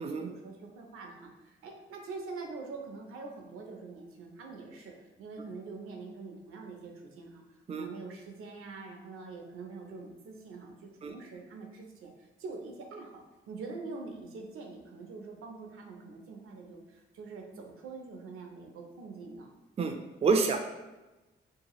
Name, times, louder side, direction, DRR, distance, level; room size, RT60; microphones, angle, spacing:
voice 1, 0.0-7.4 7.7-13.2 13.5-19.5, right 4 dB, 80° right, 2 dB, 0.5 m, -44 dB
voice 2, 19.8-20.6, right 4 dB, 30° right, 5 dB, 0.3 m, -28 dB
2.7 x 2.3 x 2.9 m, 1.1 s
cardioid pair, 70°, 21 cm